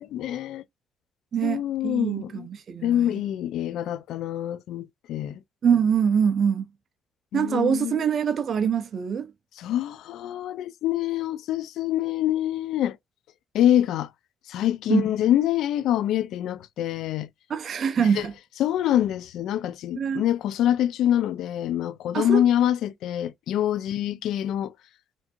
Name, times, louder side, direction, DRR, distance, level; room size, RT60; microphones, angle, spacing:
voice 1, 0.0-0.6 1.4-2.5 2.8-5.4 7.3-7.9 9.6-13.0 13.5-14.1 14.5-17.3 18.0-18.2 18.6-24.7, left 11 dB, 85° left, 0.5 m, -25 dB
voice 2, 1.3-3.2 5.6-6.6 7.3-9.3 14.9-15.1 17.5-18.3 19.9-20.2 22.1-22.4, right 7 dB, 55° right, 0.6 m, -24 dB
4.4 x 2.7 x 2.4 m
cardioid pair, 90°, 0 cm